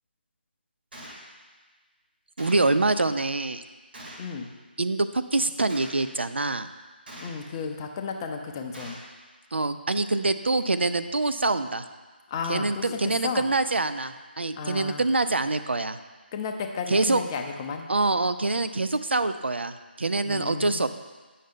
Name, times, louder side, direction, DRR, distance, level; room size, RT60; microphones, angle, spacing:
Gunshot gunfire, 0.9-1.2 2.4-2.8 3.9-4.3 5.7-6.1 7.1-7.5 8.7-9.1, right 1 dB, 60° right, 1.7 m, -43 dB
voice 1, 2.4-3.6 4.8-6.7 9.5-11.8 12.5-16.0 16.9-17.2 17.9-20.9, right 2 dB, 80° right, 11 dB, 0.4 m, -25 dB
voice 2, 7.2-9.0 12.3-13.5 14.6-15.1 16.3-17.9 20.2-20.9, left 5 dB, 20° left, 4 dB, 0.5 m, -33 dB
8.6 x 5.5 x 3.7 m, 1.3 s
figure-of-eight pair, 155°, 6 cm